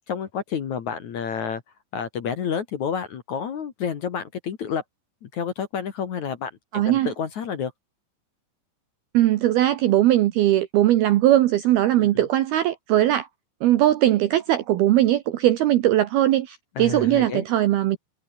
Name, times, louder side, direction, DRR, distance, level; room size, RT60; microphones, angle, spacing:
voice 1, 0.1-1.6 1.9-4.8 5.2-6.5 6.9-7.7 12.0-12.2 16.8-17.4, left 7 dB, 55° left, 2.2 m, -29 dB
voice 2, 6.7-7.1 9.1-13.3 13.6-18.0, right 13 dB, 75° right, 2.3 m, -20 dB
omnidirectional pair, 5.8 m